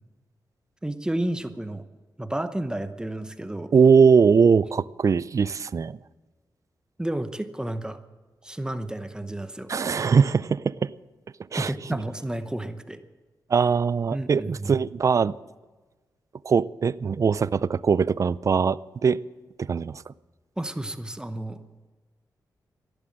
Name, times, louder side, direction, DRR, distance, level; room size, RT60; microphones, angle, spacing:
voice 1, 0.8-1.8 2.2-3.7 7.0-8.0 8.4-9.7 11.6-13.0 14.1-14.7 20.6-21.6, right 1 dB, 10° right, 9 dB, 0.9 m, -31 dB
voice 2, 3.7-6.0 9.7-10.9 11.5-11.7 13.5-15.3 16.4-19.2 19.6-20.1, right 6 dB, 45° right, 19 dB, 0.4 m, -21 dB
15.0 x 11.5 x 7.6 m, 1.3 s
wide cardioid pair, 100°, 7 cm